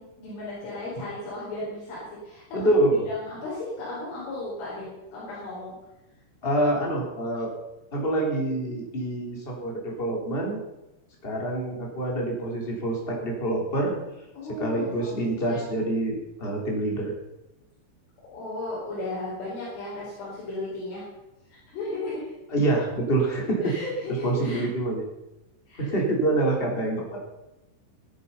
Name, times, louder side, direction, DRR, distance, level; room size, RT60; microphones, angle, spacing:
voice 1, 0.0-2.7 3.1-5.8 14.4-15.2 15.4-15.6 18.3-21.1 21.7-22.2 23.6-24.7 25.7-25.9, left 2 dB, 75° left, -8 dB, 7.1 m, -35 dB
voice 2, 2.5-3.1 6.4-7.5 7.9-10.6 11.2-14.0 14.6-17.1 22.5-23.7 24.2-25.0 25.8-27.2, right 1 dB, 15° left, 0 dB, 2.8 m, -26 dB
15.5 x 13.0 x 5.6 m, 0.96 s
omnidirectional pair, 5.6 m